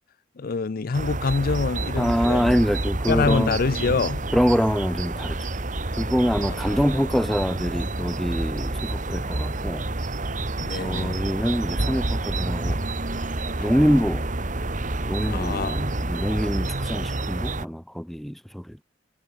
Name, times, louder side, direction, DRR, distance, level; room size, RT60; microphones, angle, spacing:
voice 1, 0.4-2.6 3.1-4.2 6.5-6.6 10.6-11.2 15.3-16.0, left 4 dB, 50° left, 0.5 m, -26 dB
sound 1, 0.9-17.7, right 2 dB, 45° right, 1.8 m, -28 dB
voice 2, 2.0-3.6 4.3-5.4 6.0-9.8 10.8-12.8 13.6-14.3 15.0-18.8, equal, ahead, 1.2 m, -25 dB
head